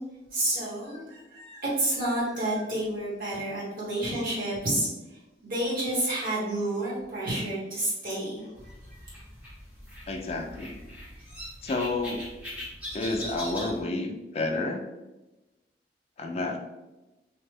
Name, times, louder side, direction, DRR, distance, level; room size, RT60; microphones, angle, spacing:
voice 1, 0.3-9.1, right 1 dB, 50° right, -7 dB, 1.2 m, -30 dB
sound 1, 8.5-13.8, equal, 10° right, 0.7 m, -41 dB
voice 2, 10.1-10.8 11.6-12.3 12.9-14.9 16.2-16.6, left 2 dB, 35° left, 4 dB, 0.3 m, -30 dB
2.9 x 2.1 x 3.2 m, 1.0 s
head